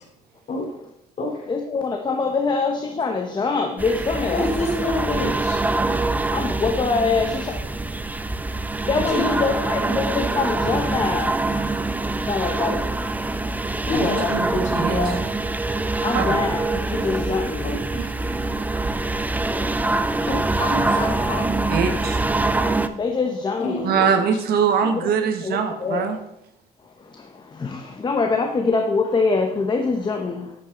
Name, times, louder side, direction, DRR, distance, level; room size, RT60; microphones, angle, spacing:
voice 1, 1.5-4.6 6.3-8.1 8.9-11.3 12.3-12.8 13.9-14.3 16.0-17.7 19.1-20.0 22.9-24.1 24.8-25.1 25.4-26.0 27.0-30.5, left 4 dB, 25° left, 3 dB, 1.0 m, -25 dB
sound 1, 3.8-22.9, right 2 dB, 10° right, 0.5 m, -24 dB
voice 2, 4.1-5.6 9.1-10.0 13.9-15.2 17.6-18.3 20.3-21.6 23.6-24.1, left 1 dB, 45° left, -1 dB, 3.2 m, -27 dB
voice 3, 21.7-22.2 23.8-26.2, right 6 dB, 65° right, 7 dB, 1.4 m, -22 dB
9.9 x 8.3 x 3.9 m, 0.81 s
cardioid pair, 110°, 17 cm